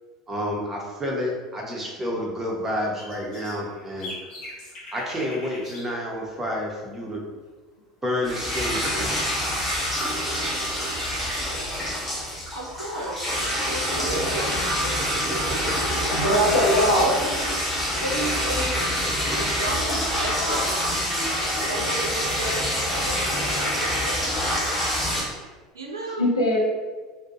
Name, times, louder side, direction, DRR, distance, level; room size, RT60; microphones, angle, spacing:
voice 1, 0.3-4.1 4.9-7.2 8.0-9.2, left 1 dB, 15° right, -2 dB, 0.7 m, -29 dB
sound 1, 2.6-5.9 6.2-6.4 9.3-9.5, left 1 dB, 40° left, 0.9 m, -41 dB
sound 2, 8.2-25.2, equal, 5° left, 1.0 m, -26 dB
voice 2, 12.5-16.6 17.9-19.0 19.3-21.3 21.6-24.9 25.7-26.2, right 1 dB, 80° right, 1 dB, 0.4 m, -34 dB
voice 3, 16.1-17.2 19.7-20.6 21.2-21.6 24.4-24.7 26.2-26.6, equal, 85° left, -4 dB, 0.6 m, -23 dB
2.4 x 2.2 x 2.7 m, 1.4 s
figure-of-eight pair, 70°, 2 cm